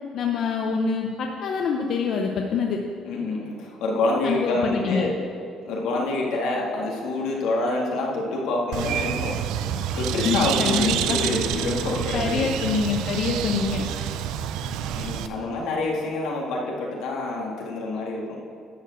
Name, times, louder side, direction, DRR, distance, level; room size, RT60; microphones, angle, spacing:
voice 1, 0.1-2.8 4.2-5.1 10.1-11.4 12.1-13.9, left 5 dB, 60° left, 2 dB, 0.7 m, -25 dB
voice 2, 3.1-5.1 5.6-9.3 10.0-12.4 14.9-18.4, left 2 dB, 85° left, -2 dB, 1.9 m, -27 dB
Bird, 8.7-15.3, right 9 dB, 85° right, 0.4 m, -28 dB
11.0 x 4.6 x 7.9 m, 2.4 s
cardioid pair, 115°, 0 cm